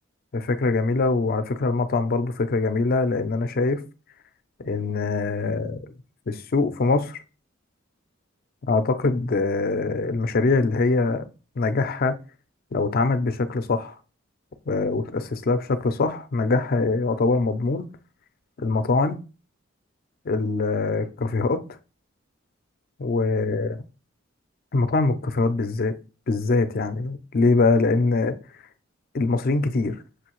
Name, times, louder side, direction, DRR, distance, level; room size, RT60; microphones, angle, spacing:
voice 1, 0.3-3.8 4.6-5.9 6.3-7.2 8.7-12.1 12.7-13.9 14.7-17.9 18.6-19.2 20.3-21.7 23.0-23.8 24.7-25.9 26.3-28.4 29.1-30.0, left 3 dB, 50° left, 0.4 m, -23 dB
6.2 x 2.7 x 3.0 m
head